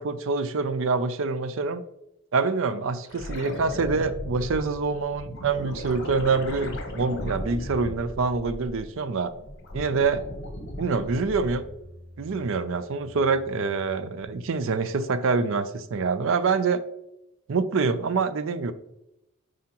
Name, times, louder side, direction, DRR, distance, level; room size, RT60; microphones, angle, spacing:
voice 1, 0.0-1.8 2.3-9.3 9.7-10.2 10.8-11.6 12.2-16.8 17.5-18.7, right 4 dB, 60° right, 13 dB, 0.5 m, -26 dB
sound 1, 3.1-8.9 9.3-11.8 14.2-14.3, left 1 dB, 50° left, 1.1 m, -36 dB
sound 2, 8.8-14.8, left 1 dB, 5° left, 2.3 m, -51 dB
7.4 x 4.9 x 2.9 m, 0.86 s
head